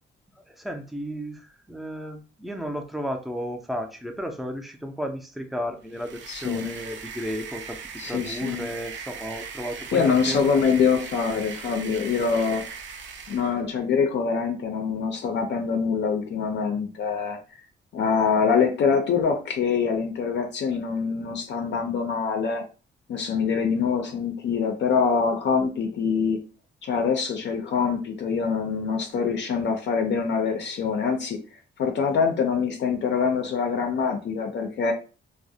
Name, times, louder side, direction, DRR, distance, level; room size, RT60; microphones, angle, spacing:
voice 1, 0.5-7.8 8.0-10.4, equal, ahead, 4 dB, 0.4 m, -33 dB
sound 1, 5.9-13.6, right 5 dB, 70° right, 0.4 m, -39 dB
voice 2, 6.3-6.7 8.0-8.7 9.9-12.6 13.3-17.4 17.9-22.6 23.1-26.4 26.8-31.4 31.8-34.9, left 5 dB, 65° left, 3 dB, 0.4 m, -24 dB
2.3 x 2.0 x 2.6 m, 0.35 s
cardioid pair, 115°, 20 cm